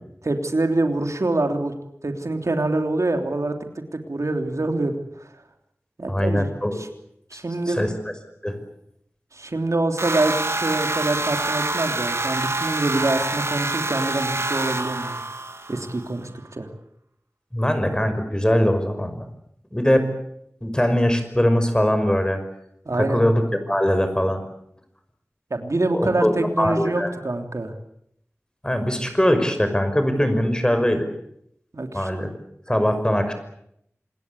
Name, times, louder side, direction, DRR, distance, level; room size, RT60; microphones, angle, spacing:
voice 1, 0.2-1.7 2.0-3.5 3.9-5.3 6.0-6.9 7.3-7.8 9.3-15.2 15.7-16.7 22.8-23.2 25.5-27.7 31.7-32.1, right 2 dB, 85° right, 6 dB, 3.2 m, -25 dB
voice 2, 6.1-6.8 7.7-7.9 8.4-8.6 17.5-19.2 19.7-20.2 20.6-22.4 23.0-24.4 25.9-27.1 28.6-31.1 31.9-32.3 32.7-33.3, equal, 15° left, 8 dB, 5.7 m, -21 dB
sound 1, 10.0-16.1, right 2 dB, 65° right, 3.0 m, -26 dB
27.0 x 21.0 x 8.4 m, 0.74 s
wide cardioid pair, 50°, 5 cm